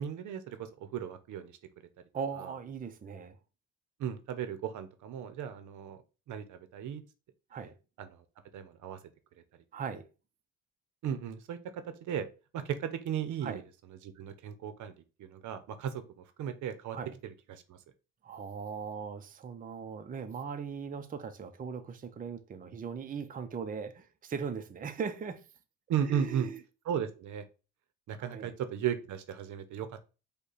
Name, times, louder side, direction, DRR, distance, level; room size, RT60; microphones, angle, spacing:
voice 1, 0.0-1.6 2.4-2.5 4.0-6.0 6.3-7.0 8.0-8.2 8.5-9.0 11.0-12.3 12.5-13.6 14.0-17.0 17.2-17.8 25.9-26.5 26.9-27.4 28.1-30.0, right 9 dB, 75° right, 0.7 m, -36 dB
voice 2, 2.1-3.4 7.5-7.7 9.7-10.0 13.4-13.6 16.9-17.1 18.2-25.4 26.1-26.6 28.2-28.5, right 6 dB, 30° right, 0.5 m, -39 dB
5.3 x 2.2 x 4.0 m
cardioid pair, 90°, 30 cm